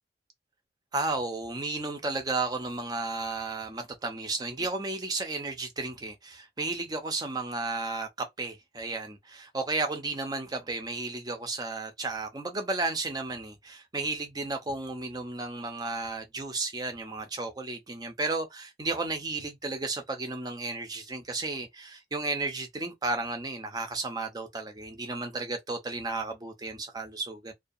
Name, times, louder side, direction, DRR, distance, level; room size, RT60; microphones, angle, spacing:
voice 1, 0.9-27.5, right 3 dB, 20° right, 0.5 m, -33 dB
2.4 x 2.2 x 2.6 m
head